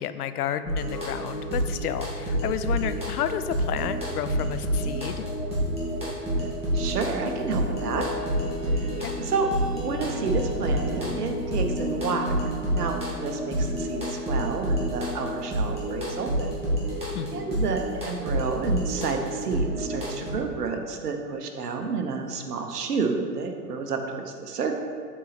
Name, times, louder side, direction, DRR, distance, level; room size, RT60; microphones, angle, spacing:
voice 1, 0.0-5.2 9.0-9.1 17.1-17.6, left 10 dB, 75° left, 11 dB, 0.5 m, -31 dB
sound 1, 0.7-20.3, right 1 dB, 15° right, 1.7 m, -29 dB
sound 2, 6.7-17.7, left 2 dB, 5° left, 1.2 m, -38 dB
voice 2, 6.7-8.1 9.2-9.5 9.8-12.4 12.7-13.0 13.2-16.6 17.3-24.8, right 5 dB, 80° right, 4 dB, 1.0 m, -30 dB
7.4 x 4.2 x 4.1 m, 2.1 s
hypercardioid pair, 120°, 46 cm